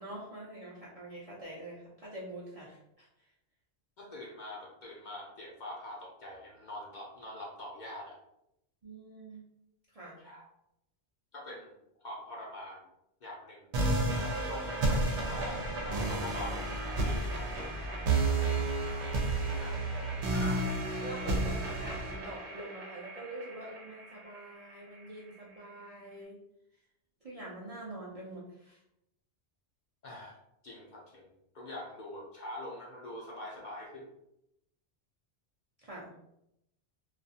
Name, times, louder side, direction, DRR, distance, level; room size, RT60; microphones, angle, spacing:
voice 1, 0.0-3.1 8.8-9.4 9.9-10.2 19.9-20.0 21.0-26.4 27.2-28.8 35.8-36.1, right 1 dB, 45° right, -6 dB, 0.5 m, -45 dB
voice 2, 4.0-8.2 10.2-10.4 11.3-11.8 12.0-12.8 13.2-13.7 14.2-18.1 19.6-19.8 20.3-20.7 30.0-30.4 30.6-31.3 31.5-34.1, left 1 dB, 55° left, -3 dB, 0.6 m, -44 dB
sound 1, 13.7-24.7, right 2 dB, 90° right, 0.9 m, -32 dB
2.4 x 2.3 x 2.6 m, 0.83 s
omnidirectional pair, 1.1 m